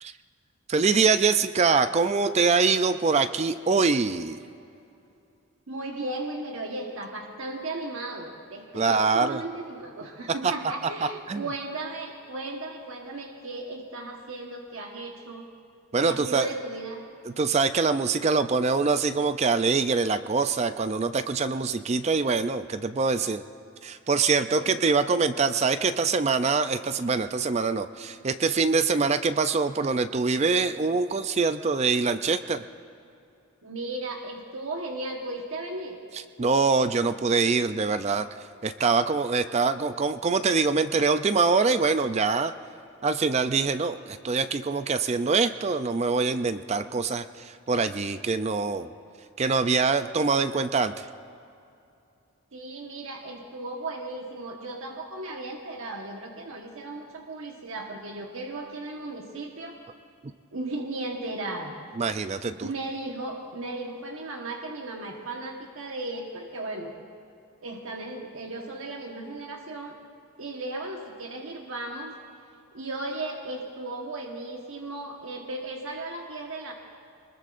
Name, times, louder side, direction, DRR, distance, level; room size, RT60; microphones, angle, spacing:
voice 1, 0.7-4.4 8.7-9.4 10.4-10.5 11.3-11.4 15.9-16.5 17.3-23.4 23.8-32.6 36.4-38.3 38.6-42.5 43.0-48.9 49.4-51.1 62.0-62.7, right 4 dB, 30° right, 11 dB, 0.4 m, -24 dB
voice 2, 5.7-15.5 16.0-17.0 24.6-24.7 33.6-36.0 52.5-59.8 60.5-61.8 62.5-66.9 67.6-69.9 70.4-72.2 72.7-76.7, right 2 dB, 70° right, 0 dB, 1.3 m, -36 dB
24.5 x 20.5 x 2.5 m, 2.6 s
head